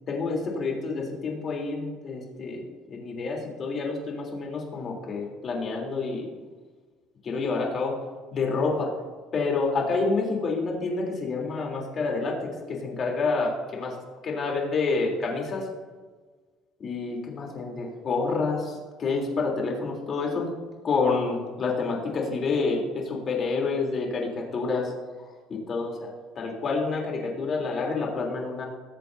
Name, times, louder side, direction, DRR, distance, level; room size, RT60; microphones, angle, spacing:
voice 1, 0.1-6.3 7.2-8.0 8.3-8.9 9.3-14.0 14.2-15.7 16.8-20.5 20.8-24.9 25.2-28.7, left 4 dB, 40° left, -1 dB, 3.5 m, -28 dB
22.5 x 8.8 x 2.8 m, 1.4 s
cardioid pair, 130°, 0 cm